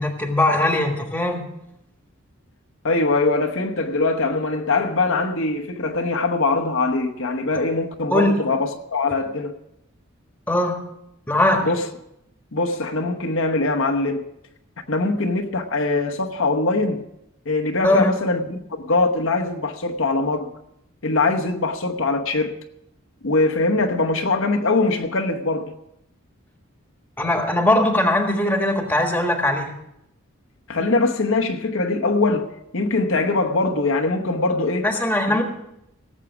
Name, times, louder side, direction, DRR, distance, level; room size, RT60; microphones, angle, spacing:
voice 1, 0.0-1.4 8.1-8.3 10.5-10.8 11.3-11.7 17.8-18.1 27.2-29.7 34.8-35.4, left 1 dB, 10° left, 1.5 m, -20 dB
voice 2, 2.8-9.5 11.6-11.8 12.5-14.3 14.9-17.0 17.5-20.5 21.0-22.6 23.2-25.7 30.7-34.9 35.3-35.4, left 3 dB, 65° left, 1.0 m, -22 dB
17.5 x 7.5 x 6.0 m
head